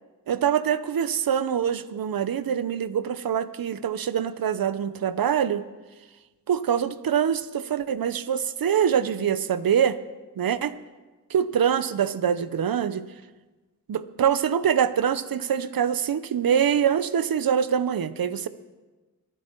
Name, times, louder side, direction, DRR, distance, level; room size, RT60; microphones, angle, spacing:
voice 1, 0.3-5.6 6.5-10.0 10.4-10.7 11.3-13.0 13.9-18.5, right 8 dB, 70° right, 14 dB, 0.7 m, -24 dB
22.5 x 9.4 x 4.5 m, 1.2 s
wide cardioid pair, 125°, 37 cm